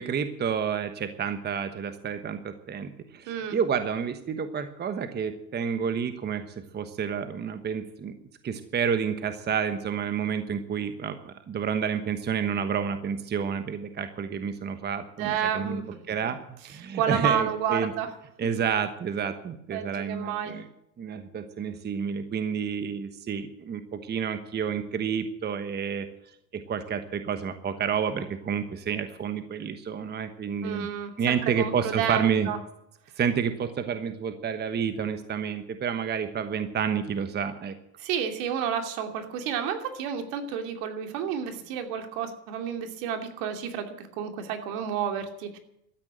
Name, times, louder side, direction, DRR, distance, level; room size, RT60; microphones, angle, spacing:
voice 1, 0.0-6.4 6.7-8.1 8.4-15.8 16.1-17.9 18.4-20.7 21.0-26.1 26.5-30.9 31.2-32.5 33.2-37.7, right 7 dB, 25° right, 9 dB, 1.2 m, -30 dB
voice 2, 3.3-3.6 15.2-15.8 16.9-18.1 19.7-20.6 30.6-32.6 38.0-45.6, right 8 dB, 65° right, 6 dB, 2.8 m, -30 dB
13.0 x 9.7 x 9.9 m, 0.79 s
supercardioid pair, 120°, 43 cm